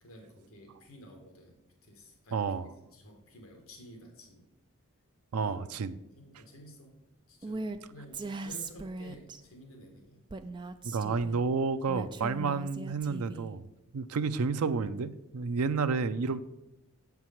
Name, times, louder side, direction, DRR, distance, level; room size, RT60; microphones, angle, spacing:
voice 1, 0.0-4.5 5.4-5.6 6.2-7.0 7.3-10.2, equal, 70° left, 2 dB, 1.6 m, -52 dB
voice 2, 2.3-2.7 5.3-6.0 10.8-13.7 13.9-16.4, right 4 dB, 90° right, 12 dB, 0.5 m, -30 dB
Female speech woman speaking, 7.4-7.8 8.1-9.4 10.3-11.4 11.9-13.5, right 3 dB, 20° right, 0.3 m, -39 dB
7.7 x 4.7 x 5.7 m, 0.94 s
head